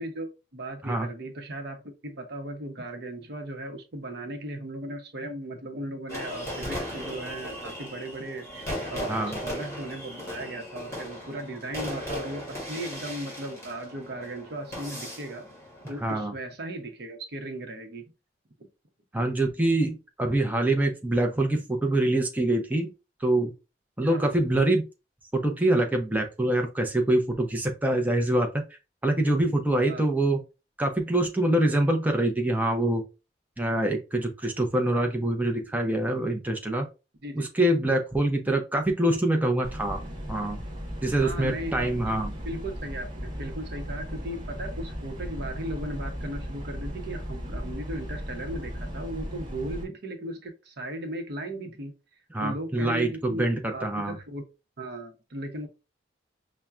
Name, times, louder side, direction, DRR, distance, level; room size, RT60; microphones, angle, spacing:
voice 1, 0.0-15.5 15.9-18.1 18.6-18.7 24.0-24.3 29.4-30.0 37.2-37.5 41.2-42.2 42.5-51.9 52.4-53.5 53.7-54.4 54.8-55.7, right 1 dB, 65° right, 0.8 m, -37 dB
sound 1, 6.1-16.2, equal, 15° left, 2.0 m, -37 dB
voice 2, 9.1-9.4 16.0-16.3 19.1-22.9 23.2-23.5 24.0-24.8 25.3-28.6 29.0-30.4 30.8-33.0 33.6-36.9 37.4-40.0 40.3-40.6 41.0-42.3 52.3-54.2, right 1 dB, 10° right, 0.6 m, -25 dB
Box Fan, 39.6-49.8, equal, 25° right, 1.3 m, -36 dB
5.5 x 2.1 x 2.4 m
head